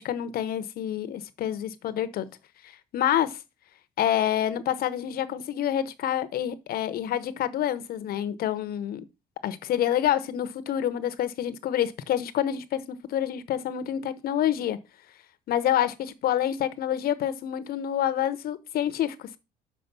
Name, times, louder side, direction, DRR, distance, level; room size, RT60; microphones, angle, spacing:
voice 1, 0.0-2.3 2.6-3.4 4.0-9.0 9.4-14.8 15.5-19.4, left 11 dB, 65° left, 0.9 m, -27 dB
6.8 x 4.9 x 5.9 m
cardioid pair, 110°, 17 cm